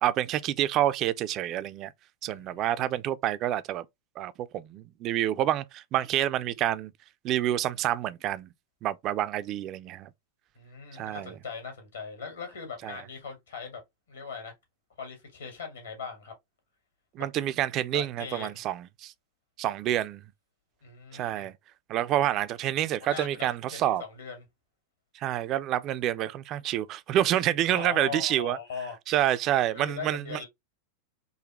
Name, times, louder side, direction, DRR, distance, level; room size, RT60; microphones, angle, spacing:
voice 1, 0.0-1.9 2.2-3.9 4.2-6.9 7.2-8.5 8.8-10.1 10.9-11.3 12.8-13.0 17.2-19.1 19.6-20.2 21.1-21.5 21.9-24.0 25.2-28.6 29.1-30.4, right 12 dB, 35° right, 0.4 m, -28 dB
voice 2, 2.2-2.8 10.6-13.8 14.1-14.5 15.0-16.3 17.2-17.3 17.9-18.6 20.8-21.5 23.0-24.5 27.7-29.0 29.7-30.5, left 5 dB, 70° left, 1.9 m, -40 dB
3.9 x 2.7 x 3.0 m
figure-of-eight pair, 90°, 0 cm